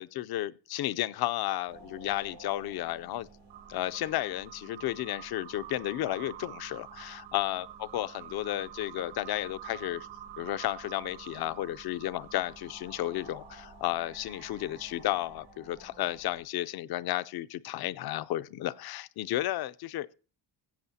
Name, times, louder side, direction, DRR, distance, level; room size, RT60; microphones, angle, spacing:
voice 1, 0.0-3.3 3.7-7.7 7.9-10.1 10.4-20.1, left 14 dB, 55° left, 0.5 m, -33 dB
sound 1, 1.7-16.4, right 8 dB, 85° right, 5.1 m, -48 dB
16.5 x 8.0 x 2.7 m
cardioid pair, 150°, 45 cm